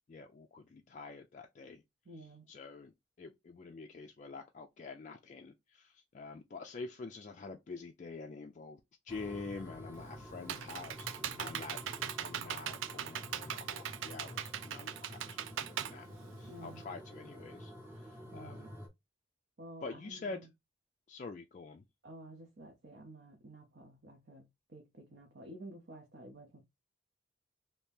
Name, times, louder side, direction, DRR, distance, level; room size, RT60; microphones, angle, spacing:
voice 1, 0.1-1.8 2.1-11.1 11.4-11.8 12.0-16.1 16.4-18.7 19.8-20.4 21.1-21.8, left 4 dB, 40° left, 0.3 m, -47 dB
voice 2, 2.1-2.5 16.5-16.8 18.3-18.7 19.6-20.5 22.0-26.6, right 1 dB, 55° right, 0.7 m, -51 dB
sound 1, 9.1-18.9, equal, 10° right, 0.7 m, -49 dB
Computer keyboard, 9.9-16.8, right 10 dB, 85° right, 0.4 m, -40 dB
2.7 x 2.7 x 3.5 m
head